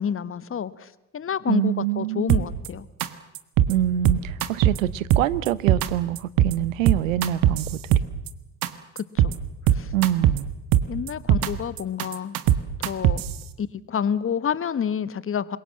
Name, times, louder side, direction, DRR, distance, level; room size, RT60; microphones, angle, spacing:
voice 1, 0.0-2.9 8.9-9.4 9.7-9.9 10.9-12.4 12.8-13.2 13.6-15.6, left 8 dB, 35° left, 1.4 m, -28 dB
voice 2, 1.5-2.5 3.7-7.8 9.9-10.5, right 13 dB, 80° right, 0.9 m, -25 dB
sound 1, 2.3-2.7 3.0-3.1 3.4-3.7 4.1-4.8 5.1-5.9 6.2-6.5 6.9-8.3 8.6-8.7 9.0-9.3 9.7-10.4 10.7-11.5 11.8-13.3, right 11 dB, 60° right, 1.6 m, -20 dB
26.5 x 22.5 x 7.6 m
hypercardioid pair, 60°, 39 cm